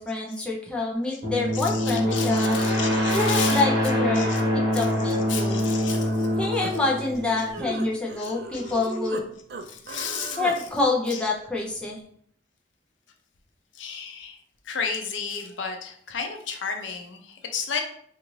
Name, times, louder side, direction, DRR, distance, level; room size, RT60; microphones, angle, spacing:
voice 1, 0.0-2.6 3.1-5.7 6.4-9.3 10.4-12.0, left 3 dB, 5° left, -3 dB, 0.6 m, -27 dB
sound 1, 1.2-7.9, equal, 75° right, 1.3 m, -25 dB
voice 2, 1.5-3.6 4.1-4.4 4.7-6.3 8.2-8.8 9.7-10.4 11.1-11.2 13.7-14.4 14.6-17.8, left 6 dB, 85° left, 4 dB, 0.6 m, -33 dB
Human voice, 5.9-9.2 9.5-10.6, right 3 dB, 55° right, 0.4 m, -37 dB
3.9 x 2.5 x 3.1 m, 0.62 s
head